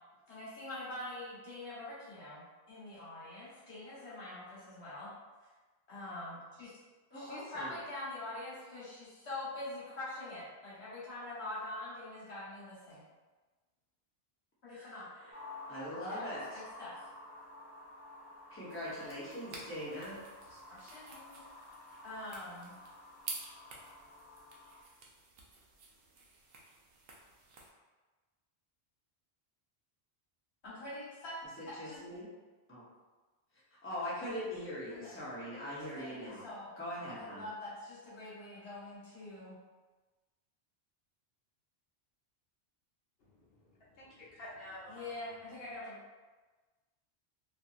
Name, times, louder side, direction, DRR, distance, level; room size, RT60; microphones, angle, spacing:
voice 1, 0.3-5.1 5.9-6.7 7.1-13.0 14.6-15.3 15.9-16.2 16.5-17.1 20.5-21.4 22.0-22.7 30.6-31.4 31.8-32.0 34.9-35.1 36.0-36.7 36.9-39.5 44.9-46.0, left 2 dB, 80° left, -9 dB, 1.5 m, -44 dB
voice 2, 7.1-7.7 14.7-14.9 15.7-16.4 18.5-20.2 31.6-32.2 32.7-32.8 33.8-36.5 36.8-37.4, equal, 15° left, -9 dB, 0.7 m, -41 dB
sound 1, 15.3-24.8, left 2 dB, 40° left, 1.0 m, -52 dB
sound 2, 18.7-27.7, right 3 dB, 70° right, 0.8 m, -51 dB
voice 3, 43.3-45.3, left 1 dB, 65° left, -7 dB, 1.0 m, -50 dB
2.8 x 2.7 x 2.4 m, 1.3 s
omnidirectional pair, 1.1 m